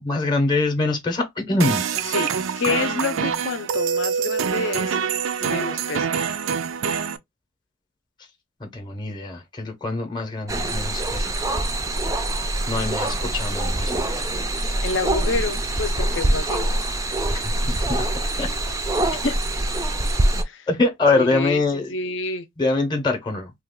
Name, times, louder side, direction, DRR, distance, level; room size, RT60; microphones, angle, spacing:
voice 1, 0.0-1.8 8.6-11.4 12.7-14.0 17.3-18.1 18.4-18.5 20.3-21.9 22.6-23.5, left 2 dB, 25° left, 0.7 m, -24 dB
sound 1, 1.6-7.2, right 6 dB, 80° right, 0.4 m, -25 dB
voice 2, 2.1-5.0 5.4-6.1 14.8-16.7 19.2-19.4 20.4-20.7 21.1-21.6 21.9-22.5, left 4 dB, 65° left, 0.6 m, -28 dB
sound 2, 10.5-20.4, right 1 dB, 15° right, 0.4 m, -24 dB
2.9 x 2.3 x 3.6 m
head